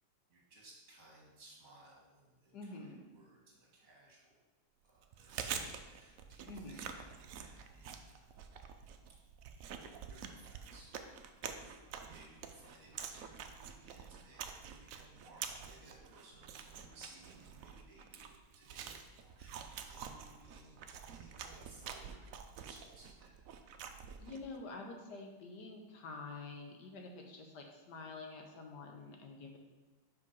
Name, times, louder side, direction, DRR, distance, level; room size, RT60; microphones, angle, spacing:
voice 1, 0.3-4.4 4.8-8.3 10.0-10.9 11.4-22.2 22.6-23.3, right 2 dB, 50° right, -3 dB, 2.0 m, -61 dB
voice 2, 2.5-3.0 6.4-6.8 24.2-29.6, left 3 dB, 70° left, 3 dB, 1.3 m, -48 dB
Chewing mastication, 5.0-24.5, right 7 dB, 75° right, 0.7 m, -47 dB
5.5 x 5.2 x 5.3 m, 1.2 s
omnidirectional pair, 2.0 m